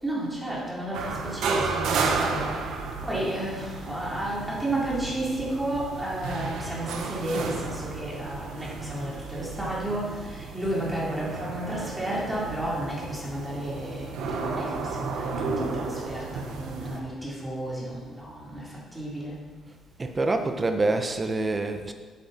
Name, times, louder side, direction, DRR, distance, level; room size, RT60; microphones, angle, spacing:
voice 1, 0.0-16.2 16.5-19.4, right 1 dB, 10° right, -6 dB, 3.8 m, -32 dB
sound 1, 0.9-17.0, right 4 dB, 85° right, 1.3 m, -33 dB
voice 2, 20.0-21.9, right 2 dB, 25° right, 6 dB, 1.1 m, -26 dB
10.0 x 9.1 x 4.4 m, 1.4 s
cardioid pair, 90°, 0 cm